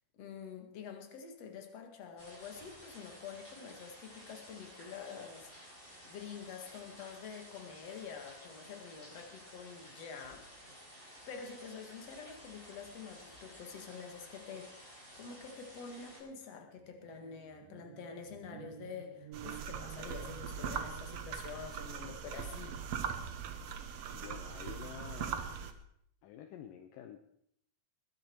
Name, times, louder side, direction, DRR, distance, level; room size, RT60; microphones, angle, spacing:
voice 1, 0.1-5.7 6.0-10.4 11.3-14.7 15.1-22.7, left 6 dB, 50° left, 4 dB, 2.7 m, -47 dB
sound 1, 2.2-16.2, equal, 15° left, 6.1 m, -54 dB
sound 2, 16.1-21.2, right 9 dB, 80° right, 2.9 m, -53 dB
sound 3, 19.3-25.7, right 7 dB, 65° right, 1.7 m, -40 dB
voice 2, 24.1-25.5 26.2-27.2, left 10 dB, 75° left, 7 dB, 2.4 m, -49 dB
20.5 x 11.0 x 4.6 m, 0.70 s
omnidirectional pair, 4.0 m